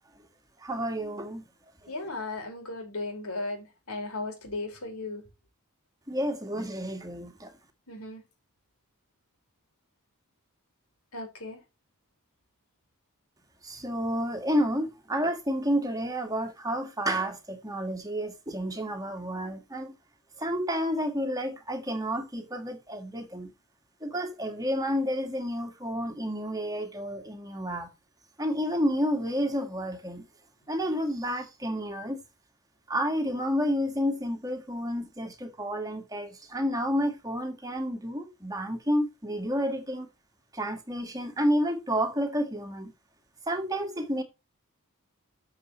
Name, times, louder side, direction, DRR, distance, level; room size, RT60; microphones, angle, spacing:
voice 1, 0.6-1.4 1.8-2.1 6.1-7.5 13.6-19.9 20.4-23.5 24.0-27.9 28.4-30.2 30.7-32.2 32.9-40.1 40.5-42.9 43.5-44.2, equal, 15° right, 1.8 m, -30 dB
voice 2, 1.9-5.2 7.9-8.2 11.1-11.6, left 2 dB, 75° left, 5.2 m, -36 dB
13.5 x 7.2 x 3.2 m
head